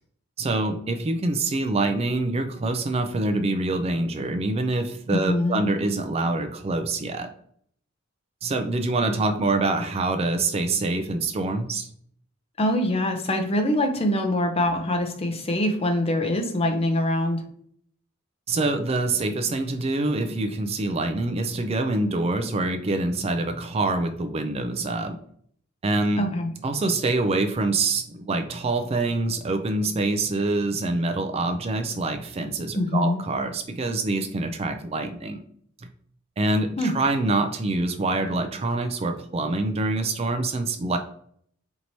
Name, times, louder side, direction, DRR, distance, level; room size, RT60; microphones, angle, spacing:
voice 1, 0.4-7.3 8.4-11.9 18.5-25.2 25.8-26.2 26.6-35.4 35.8-35.9 36.4-41.0, right 2 dB, 30° right, 7 dB, 0.3 m, -25 dB
voice 2, 5.1-5.6 12.6-17.4 26.2-26.5 32.7-33.2 36.8-36.9, left 1 dB, 30° left, 5 dB, 0.5 m, -24 dB
4.5 x 2.9 x 2.7 m, 0.62 s
head